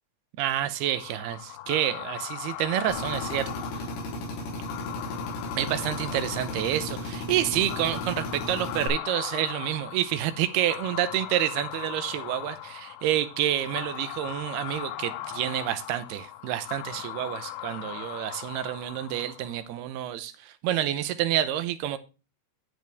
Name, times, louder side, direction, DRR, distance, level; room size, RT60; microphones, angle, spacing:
voice 1, 0.4-3.8 5.6-20.3 20.6-22.0, right 12 dB, 75° right, 12 dB, 2.5 m, -28 dB
sound 1, 0.8-19.7, left 13 dB, 85° left, 2.2 m, -39 dB
Drill, 2.9-8.9, left 1 dB, 65° left, 5.1 m, -35 dB
11.0 x 7.9 x 3.5 m, 0.31 s
omnidirectional pair, 5.2 m